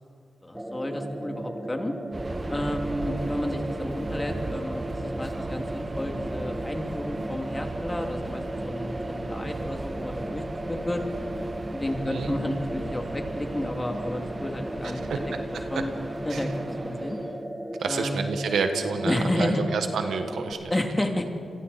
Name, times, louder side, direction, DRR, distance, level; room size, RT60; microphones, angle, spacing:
voice 1, 0.4-1.9 2.5-11.0 11.7-15.2 15.7-15.9 16.2-17.2 17.9-18.2 19.0-19.6 20.7-21.3, left 1 dB, 20° left, 3 dB, 2.5 m, -31 dB
sound 1, 0.5-20.5, right 1 dB, 10° right, 1.9 m, -36 dB
Subway metro underground, 2.1-17.5, right 2 dB, 30° right, 0.8 m, -37 dB
voice 2, 12.0-12.4 14.8-15.2 16.3-16.4 17.8-20.7, right 5 dB, 80° right, 7 dB, 1.4 m, -29 dB
28.5 x 22.0 x 4.2 m, 2.6 s
cardioid pair, 65°, 0 cm